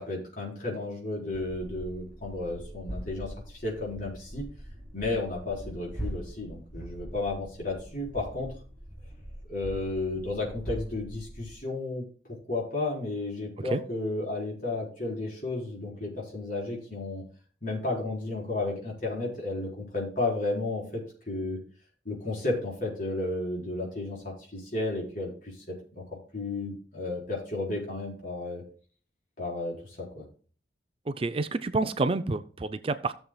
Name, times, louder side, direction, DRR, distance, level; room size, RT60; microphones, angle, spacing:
voice 1, 0.0-4.4 4.9-8.5 9.5-17.2 17.6-21.6 22.0-26.0 26.3-28.6 29.4-30.3, left 2 dB, 50° left, 4.3 m, -33 dB
sound 1, 1.3-11.6, equal, 5° left, 2.0 m, -42 dB
voice 2, 31.1-33.1, right 3 dB, 30° right, 0.4 m, -28 dB
15.5 x 7.2 x 2.3 m
head